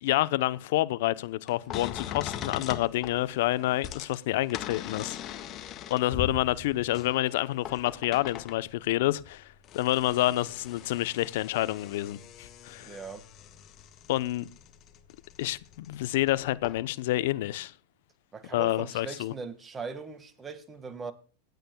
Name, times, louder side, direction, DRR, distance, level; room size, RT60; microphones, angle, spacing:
voice 1, 0.0-5.2 5.9-13.0 14.1-14.5 15.4-17.7 18.5-19.3, left 16 dB, 65° left, 0.8 m, -28 dB
sound 1, 1.5-8.7 9.3-16.3 16.6-16.8, left 9 dB, 40° left, 1.7 m, -41 dB
voice 2, 12.8-13.2 18.3-21.1, right 4 dB, 20° right, 1.8 m, -40 dB
26.0 x 9.2 x 2.3 m
hypercardioid pair, 105°, 0 cm